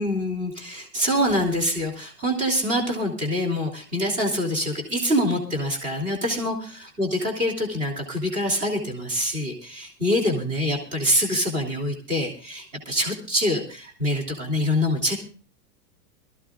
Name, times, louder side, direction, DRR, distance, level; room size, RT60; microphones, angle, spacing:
voice 1, 0.0-15.2, equal, 15° right, 1 dB, 3.0 m, -25 dB
23.0 x 14.5 x 2.5 m, 0.37 s
supercardioid pair, 175°, 47 cm